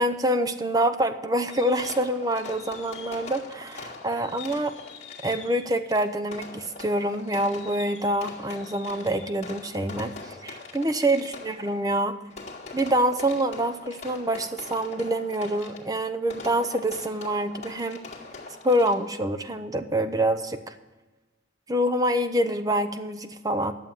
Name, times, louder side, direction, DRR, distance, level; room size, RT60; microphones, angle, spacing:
voice 1, 0.0-4.7 5.2-12.1 12.7-18.0 18.6-20.8 21.7-23.7, right 1 dB, 20° right, 9 dB, 0.6 m, -26 dB
Fireworks, 1.5-19.3, left 4 dB, 35° left, 2.2 m, -42 dB
11.0 x 7.4 x 8.9 m, 1.2 s
head